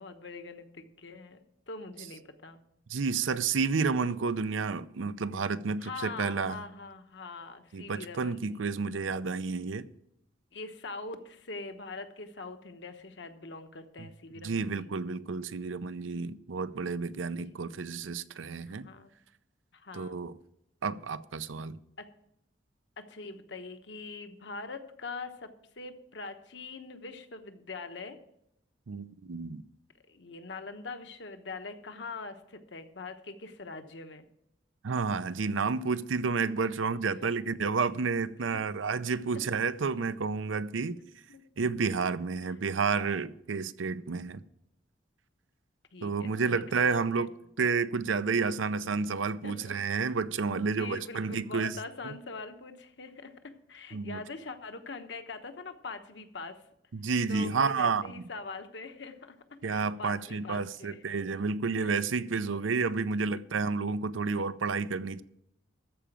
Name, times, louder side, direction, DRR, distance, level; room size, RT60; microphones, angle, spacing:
voice 1, 0.0-1.4 1.7-2.6 5.8-8.7 10.5-14.9 18.6-19.1 19.7-20.2 22.0-22.1 23.0-28.2 30.1-34.3 38.5-38.6 39.3-39.5 39.9-40.0 41.3-41.4 42.4-42.5 45.9-47.3 49.4-49.8 50.5-56.6 57.3-61.2 61.7-62.0 64.3-64.4, left 3 dB, 65° left, 1.1 m, -43 dB
voice 2, 2.9-6.6 7.7-9.9 14.4-18.9 19.9-20.3 20.8-21.8 28.9-29.6 34.8-41.0 41.6-44.4 46.0-47.3 47.6-51.8 52.0-52.1 53.9-54.2 56.9-58.1 59.6-65.2, right 4 dB, 85° right, 0.6 m, -30 dB
14.0 x 5.0 x 8.9 m
head